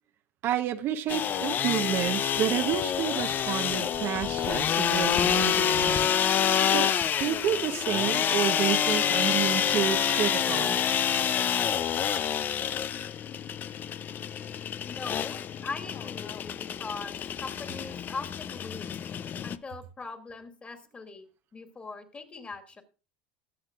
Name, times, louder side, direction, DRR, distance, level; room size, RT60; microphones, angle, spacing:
voice 1, 0.4-6.3 6.7-6.9 7.2-10.8, right 10 dB, 50° right, 0.9 m, -30 dB
sound 1, 1.1-19.6, left 9 dB, 40° left, 0.6 m, -27 dB
voice 2, 14.9-18.9 19.4-21.3 21.5-22.8, left 4 dB, 25° left, 2.3 m, -41 dB
20.0 x 7.5 x 2.4 m
hypercardioid pair, 95°, 5 cm